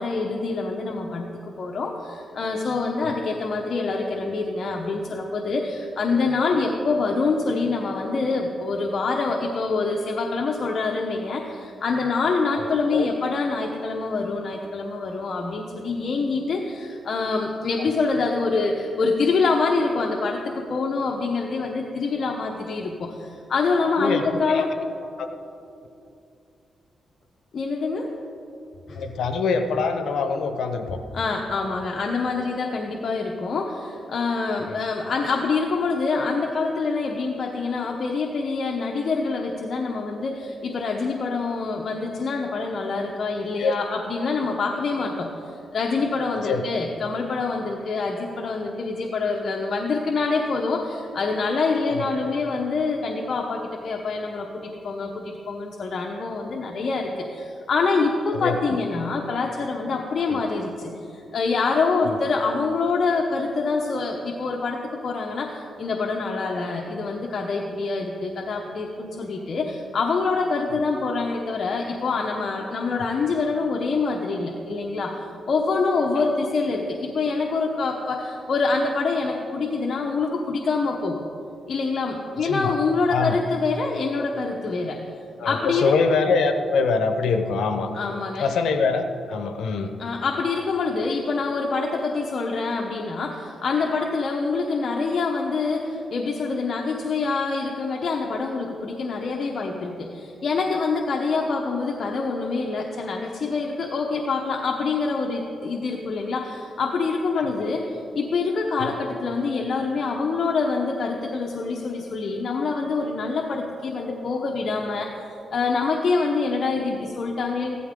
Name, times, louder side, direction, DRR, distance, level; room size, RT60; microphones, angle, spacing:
voice 1, 0.0-24.7 27.5-28.1 28.9-29.0 31.1-45.3 45.7-81.3 81.7-85.0 85.4-85.9 87.9-88.5 90.0-115.1 115.5-117.8, left 4 dB, 55° left, 1 dB, 1.0 m, -25 dB
voice 2, 12.6-13.1 24.0-24.7 25.2-25.3 29.0-30.9 34.6-34.8 43.6-43.7 46.5-46.6 51.9-52.0 58.3-58.6 60.3-60.4 62.0-62.2 76.2-76.3 82.4-82.7 83.1-83.4 85.4-87.9 88.4-89.9 107.4-107.5 108.8-108.9, left 4 dB, 85° left, 7 dB, 0.9 m, -24 dB
15.5 x 12.5 x 3.8 m, 2.7 s
cardioid pair, 85°, 0 cm